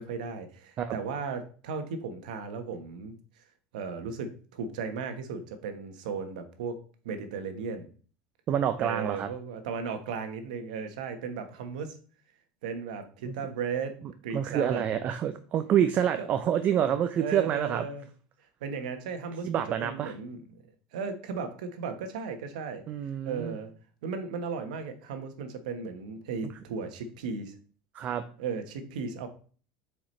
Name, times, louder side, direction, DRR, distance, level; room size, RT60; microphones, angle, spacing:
voice 1, 0.0-3.2 3.7-6.8 7.0-7.9 8.8-12.0 12.6-13.9 14.2-14.8 16.2-16.3 17.2-18.1 18.6-20.6 20.9-22.8 23.2-23.7 24.0-27.5 28.4-29.3, right 5 dB, 85° right, 8 dB, 1.2 m, -36 dB
voice 2, 8.5-9.3 13.3-13.4 14.3-17.8 19.4-20.1 22.9-23.6 27.9-28.2, right 9 dB, 40° right, 8 dB, 0.6 m, -27 dB
7.2 x 4.9 x 3.2 m, 0.41 s
supercardioid pair, 120°, 4 cm